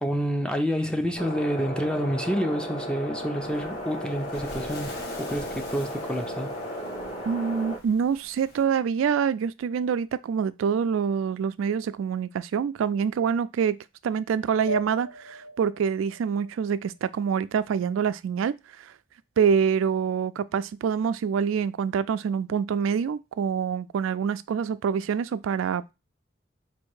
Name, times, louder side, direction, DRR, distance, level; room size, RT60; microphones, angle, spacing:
voice 1, 0.0-6.5, equal, 5° left, 0.5 m, -28 dB
sound 1, 1.2-7.8, equal, 35° left, 1.9 m, -35 dB
Waves surf, 3.4-8.6, left 2 dB, 60° left, 1.3 m, -45 dB
voice 2, 7.3-13.8 14.0-18.5 18.8-18.9 19.4-25.9, right 7 dB, 85° right, 0.3 m, -26 dB
sound 2, 14.7-17.6, right 1 dB, 75° left, 0.8 m, -37 dB
4.2 x 2.6 x 4.7 m
head